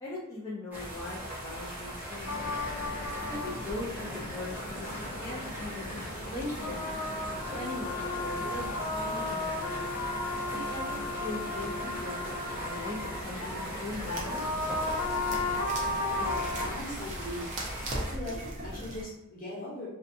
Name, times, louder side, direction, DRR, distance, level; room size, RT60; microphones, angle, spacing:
voice 1, 0.0-2.5 3.3-6.0 6.3-6.9 7.5-9.9 10.5-14.4, left 2 dB, 15° left, -8 dB, 0.4 m, -40 dB
sound 1, 0.7-18.1, equal, 10° right, 0.8 m, -40 dB
sound 2, 2.3-16.7, left 2 dB, 75° left, 0.6 m, -35 dB
sound 3, 13.9-19.0, right 1 dB, 35° right, 0.5 m, -39 dB
voice 2, 16.0-17.5 17.9-19.9, left 1 dB, 40° left, -6 dB, 1.0 m, -40 dB
2.6 x 2.2 x 2.6 m, 0.90 s
head